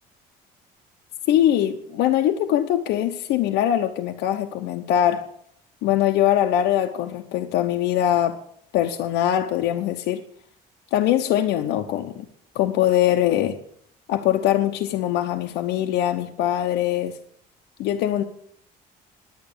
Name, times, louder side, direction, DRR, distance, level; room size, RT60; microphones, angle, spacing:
voice 1, 1.3-5.3 5.8-8.4 8.7-10.3 10.9-12.3 12.5-13.6 14.1-17.2 17.8-18.2, left 11 dB, 90° left, 0.9 m, -22 dB
10.5 x 9.2 x 6.9 m
cardioid pair, 110°, 17 cm